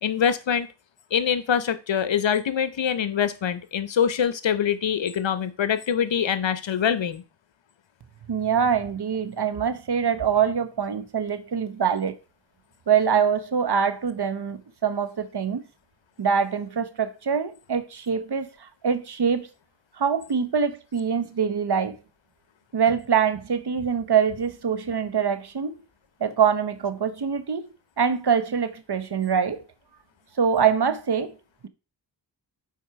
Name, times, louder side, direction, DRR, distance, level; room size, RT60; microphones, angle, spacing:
voice 1, 0.0-0.7 1.1-7.2, left 8 dB, 80° left, 0.8 m, -24 dB
voice 2, 8.3-12.1 12.9-15.6 16.2-18.5 18.8-19.5 20.0-22.0 22.7-25.7 26.2-27.6 28.0-29.6 30.4-31.3, right 7 dB, 60° right, 1.0 m, -24 dB
7.5 x 4.7 x 4.7 m
cardioid pair, 50°, 44 cm